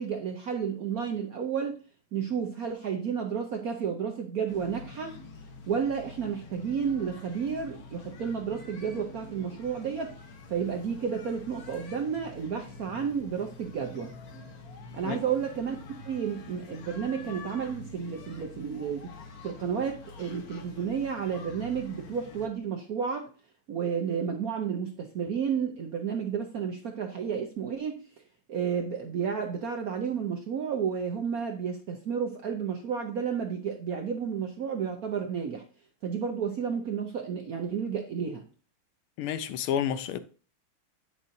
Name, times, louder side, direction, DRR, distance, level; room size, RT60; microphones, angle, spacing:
voice 1, 0.0-1.8 2.1-5.2 5.7-10.1 10.5-14.1 14.9-15.8 16.1-19.1 19.4-23.3 23.7-28.0 28.5-35.6 36.0-38.5, right 7 dB, 65° right, 0.9 m, -31 dB
sound 1, 4.5-22.5, left 3 dB, 55° left, 1.2 m, -46 dB
voice 2, 39.2-40.2, left 9 dB, 80° left, 1.5 m, -30 dB
8.6 x 6.7 x 2.6 m
omnidirectional pair, 2.4 m